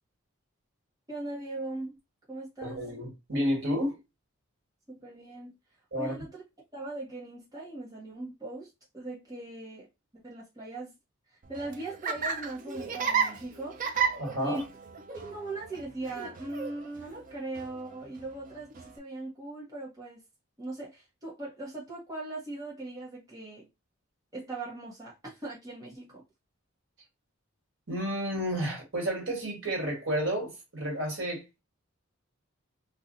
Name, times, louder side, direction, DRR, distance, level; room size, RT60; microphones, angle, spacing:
voice 1, 1.1-2.0 2.3-2.8 4.9-5.5 5.9-6.4 6.7-9.9 10.1-10.9 11.3-13.8 14.4-14.6 15.1-20.2 20.6-23.7 24.3-26.2, right 2 dB, 15° right, 0.9 m, -40 dB
voice 2, 2.6-4.0 5.9-6.1 14.2-14.6 27.9-31.6, equal, 60° right, 1.5 m, -31 dB
Laughter, 11.4-19.0, right 6 dB, 35° right, 0.4 m, -34 dB
2.7 x 2.4 x 3.8 m
head